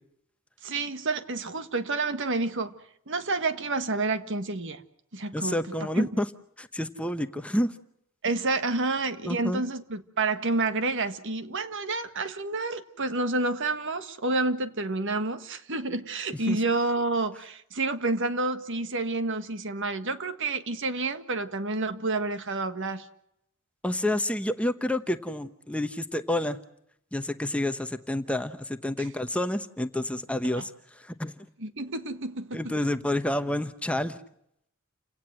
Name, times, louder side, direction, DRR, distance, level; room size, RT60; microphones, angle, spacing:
voice 1, 0.6-2.7 3.1-4.8 5.1-5.6 6.0-6.1 8.2-23.1 29.0-29.1 30.6-30.7 31.6-32.7, right 3 dB, 60° right, 10 dB, 1.6 m, -29 dB
voice 2, 5.3-6.3 6.6-7.7 9.3-9.6 16.5-16.6 23.8-26.6 27.1-30.7 31.0-31.3 32.5-34.2, left 1 dB, 5° left, 9 dB, 1.0 m, -29 dB
29.5 x 17.5 x 7.7 m, 0.75 s
head